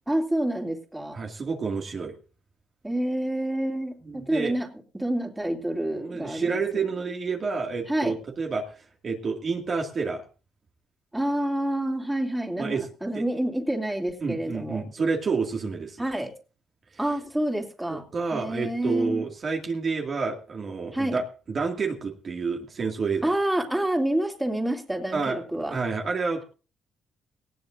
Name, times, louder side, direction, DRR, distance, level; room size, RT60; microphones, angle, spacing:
voice 1, 0.1-1.2 2.8-4.7 4.9-6.6 7.9-8.1 11.1-14.8 16.0-16.3 17.0-18.0 18.3-19.2 20.9-21.2 23.2-25.7, right 1 dB, 10° right, 2 dB, 2.8 m, -28 dB
voice 2, 1.1-2.2 4.0-4.5 5.9-10.2 12.6-12.8 13.1-13.2 14.2-16.0 17.9-23.3 25.1-25.4 25.7-26.4, right 4 dB, 45° right, 1 dB, 2.2 m, -29 dB
19.0 x 15.5 x 2.6 m, 0.36 s
cardioid pair, 90°, 0 cm